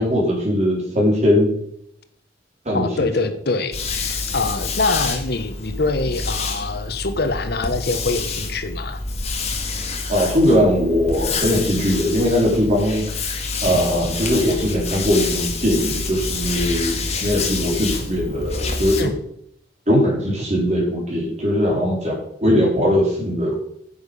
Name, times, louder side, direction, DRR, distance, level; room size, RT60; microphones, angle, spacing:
voice 1, 0.0-1.5 2.6-3.1 10.1-13.0 13.6-19.1 19.9-23.5, equal, 40° right, -1 dB, 4.3 m, -20 dB
voice 2, 2.7-9.0 19.0-19.1, left 3 dB, 60° left, 10 dB, 1.0 m, -24 dB
sound 1, 3.7-19.0, left 3 dB, 35° left, 1.8 m, -27 dB
10.5 x 8.3 x 5.3 m, 0.72 s
head